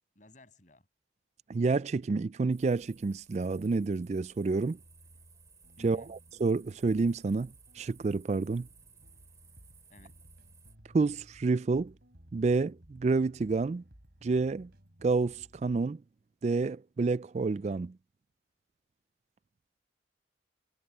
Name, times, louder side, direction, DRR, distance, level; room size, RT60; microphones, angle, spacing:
voice 1, 0.2-0.9 5.8-6.1 9.9-10.1, left 1 dB, 40° left, 7.4 m, -54 dB
voice 2, 1.5-4.8 5.8-8.7 10.9-11.9 12.3-13.8 14.2-14.7 15.0-16.0 16.4-18.0, right 3 dB, 35° right, 0.3 m, -29 dB
sound 1, 2.5-10.8, right 5 dB, 20° right, 3.3 m, -60 dB
sound 2, 4.7-15.8, equal, 60° right, 3.3 m, -59 dB
head